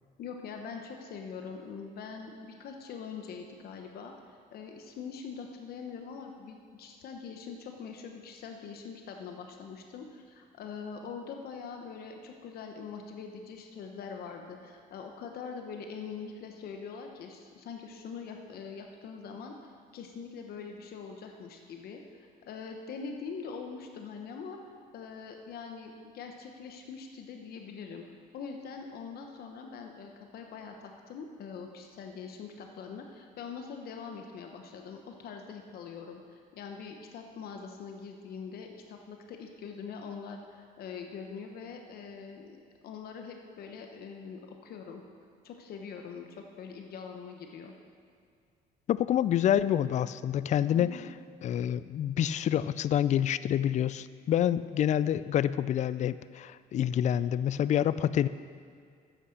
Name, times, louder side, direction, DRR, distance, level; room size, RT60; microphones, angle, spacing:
voice 1, 0.2-24.6 24.9-28.0 28.3-45.0 45.4-47.7 50.7-51.1, left 5 dB, 65° left, 3 dB, 1.0 m, -43 dB
voice 2, 48.9-51.0 51.4-58.3, left 10 dB, 45° left, 16 dB, 0.4 m, -27 dB
9.9 x 8.3 x 6.6 m, 2.2 s
cardioid pair, 110°, 17 cm